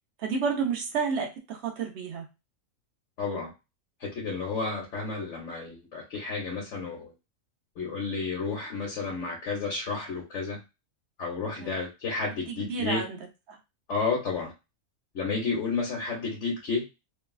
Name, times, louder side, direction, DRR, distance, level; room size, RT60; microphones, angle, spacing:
voice 1, 0.2-2.3 11.6-11.8 12.5-13.2 13.5-13.6, right 5 dB, 55° right, 2 dB, 0.9 m, -30 dB
voice 2, 3.2-3.5 4.0-7.1 7.8-10.6 11.2-13.0 13.9-14.5 15.1-16.8, left 4 dB, 60° left, -3 dB, 1.2 m, -31 dB
3.2 x 2.3 x 2.3 m, 0.26 s
omnidirectional pair, 1.5 m